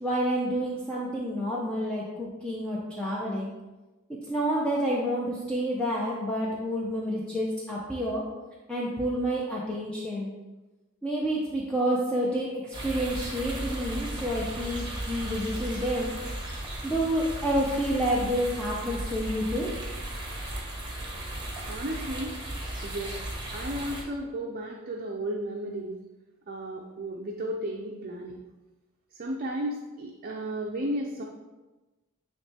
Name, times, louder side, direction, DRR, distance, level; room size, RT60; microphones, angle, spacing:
voice 1, 0.0-3.5 4.3-8.2 8.7-10.3 11.0-16.1 16.8-19.7, equal, 5° left, -5 dB, 0.7 m, -29 dB
sound 1, 12.7-24.0, right 1 dB, 20° right, 1.3 m, -36 dB
voice 2, 21.7-22.4 22.8-23.1 23.5-25.9 26.5-28.4 29.2-31.2, right 1 dB, 45° right, 0 dB, 0.6 m, -34 dB
9.5 x 3.2 x 3.4 m, 1.1 s
head